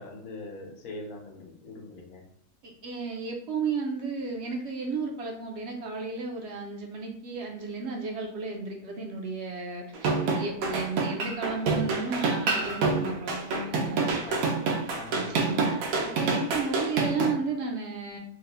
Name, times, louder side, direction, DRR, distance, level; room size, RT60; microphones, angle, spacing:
voice 1, 0.0-2.2 14.0-15.3, left 2 dB, 75° left, 1 dB, 1.2 m, -42 dB
voice 2, 2.6-14.2 15.1-18.2, right 4 dB, 65° right, 1 dB, 0.7 m, -33 dB
sound 1, 9.9-17.3, right 4 dB, 85° right, 1.2 m, -27 dB
3.4 x 2.1 x 3.3 m, 0.70 s
omnidirectional pair, 1.6 m